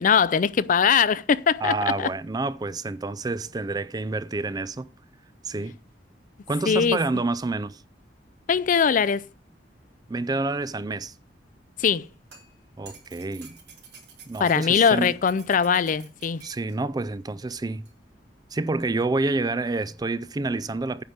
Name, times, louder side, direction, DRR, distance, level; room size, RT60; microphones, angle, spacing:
voice 1, 0.0-2.1 6.7-7.0 8.5-9.2 11.8-12.1 14.4-16.4, left 6 dB, 50° left, 0.4 m, -21 dB
voice 2, 1.6-4.9 5.4-5.8 6.5-7.8 10.1-11.1 12.8-13.6 14.3-15.1 16.4-17.9 18.5-21.0, right 3 dB, 20° right, 0.4 m, -28 dB
sound 1, 11.9-16.8 17.9-18.0, right 5 dB, 70° right, 3.7 m, -50 dB
9.5 x 5.1 x 7.9 m
head